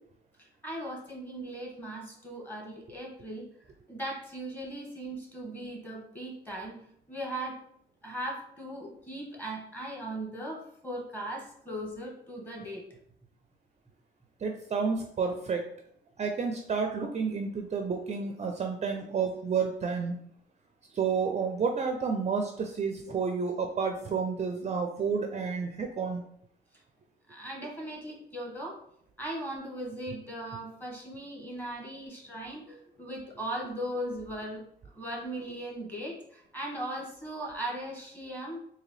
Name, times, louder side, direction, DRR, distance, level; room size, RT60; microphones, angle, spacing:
voice 1, 0.6-3.4 3.9-6.8 7.1-7.6 8.0-12.8 27.3-28.8 29.2-34.6 34.9-38.6, right 1 dB, 10° left, -1 dB, 1.3 m, -38 dB
voice 2, 14.4-15.6 16.2-20.2 20.9-26.2, right 5 dB, 35° right, 4 dB, 0.4 m, -30 dB
3.8 x 2.8 x 3.2 m, 0.69 s
cardioid pair, 90°, 20 cm